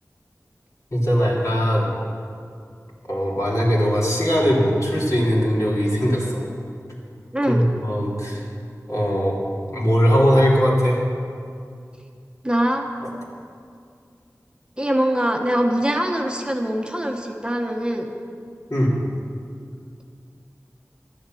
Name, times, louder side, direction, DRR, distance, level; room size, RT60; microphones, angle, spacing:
voice 1, 0.9-1.9 3.1-6.4 7.5-8.4 8.9-9.4 9.7-11.0 18.7-18.9, equal, 60° left, -5 dB, 3.1 m, -20 dB
voice 2, 7.3-7.6 12.4-12.9 14.8-18.1, equal, 15° right, 2 dB, 0.9 m, -23 dB
12.0 x 7.9 x 7.7 m, 2.4 s
wide cardioid pair, 40°, 6 cm